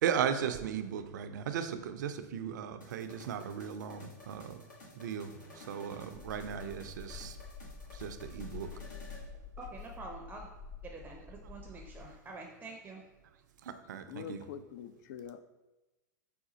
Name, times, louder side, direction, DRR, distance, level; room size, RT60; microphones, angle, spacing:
voice 1, 0.0-4.7 4.9-7.4 7.9-8.8 11.7-11.8 13.6-14.5, right 8 dB, 70° right, 9 dB, 0.4 m, -36 dB
sound 1, 2.8-9.3, left 2 dB, 80° left, 1.3 m, -54 dB
sound 2, 6.1-12.1, left 5 dB, 25° left, 0.9 m, -48 dB
voice 2, 9.6-10.5 10.8-13.0, right 3 dB, 15° right, 1 dB, 0.5 m, -47 dB
voice 3, 14.1-15.4, left 8 dB, 60° left, 11 dB, 0.4 m, -44 dB
5.0 x 2.3 x 3.9 m, 1.1 s
hypercardioid pair, 105°, 10 cm